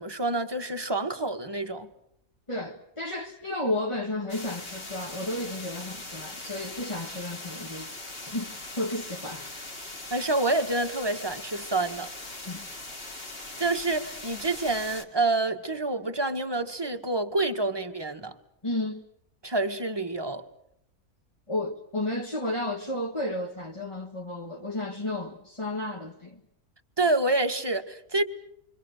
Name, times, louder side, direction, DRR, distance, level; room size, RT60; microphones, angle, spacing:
voice 1, 0.0-1.9 10.1-12.1 13.6-18.3 19.4-20.4 27.0-28.2, right 2 dB, 15° right, 1.5 m, -27 dB
voice 2, 2.5-7.9 8.2-9.7 12.4-12.6 18.6-19.0 21.5-26.4, left 1 dB, 20° left, 1.5 m, -32 dB
sound 1, 4.3-15.0, left 2 dB, 40° left, 2.5 m, -40 dB
28.5 x 25.0 x 6.6 m
omnidirectional pair, 1.6 m